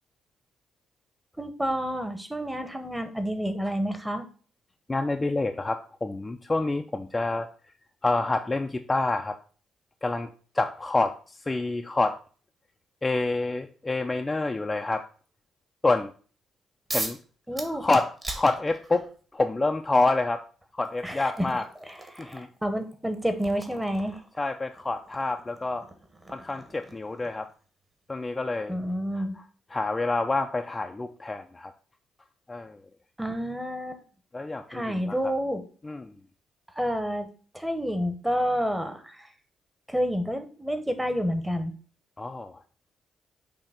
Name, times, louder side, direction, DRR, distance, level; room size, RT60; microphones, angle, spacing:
voice 1, 1.4-4.2 17.5-17.9 21.0-21.5 21.8-24.2 28.7-29.4 33.2-34.0 34.7-35.6 36.7-37.3 37.5-39.3 39.9-41.7, equal, 5° right, 8 dB, 1.0 m, -29 dB
voice 2, 4.9-7.5 8.0-9.4 10.0-10.3 10.5-12.2 13.0-15.0 15.8-16.1 16.9-17.2 17.8-20.4 20.7-21.6 22.2-22.5 24.4-25.8 26.3-27.5 28.1-28.7 29.2-29.3 29.7-31.7 32.5-32.8 34.3-35.2 35.8-36.1 42.2-42.6, left 2 dB, 20° left, 4 dB, 0.5 m, -27 dB
sound 1, 16.9-17.2 17.6-19.1 20.2-20.3 20.8-27.5, right 2 dB, 25° right, 1.3 m, -40 dB
6.7 x 2.9 x 5.8 m, 0.41 s
cardioid pair, 90°, 0 cm